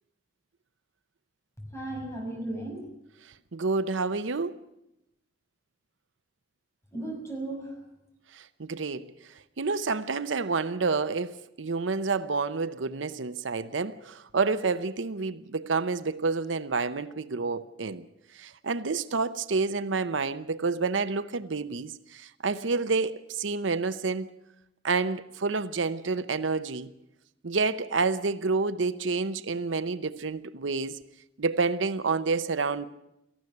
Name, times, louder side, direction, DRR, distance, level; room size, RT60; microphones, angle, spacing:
voice 1, 1.6-2.9 6.9-7.8, right 2 dB, 15° left, 6.2 m, -35 dB
voice 2, 3.5-4.6 8.3-9.1 9.6-18.0 18.4-24.3 24.8-26.9 27.4-31.0 31.4-32.9, right 4 dB, 85° right, 0.8 m, -29 dB
19.0 x 14.5 x 9.6 m
head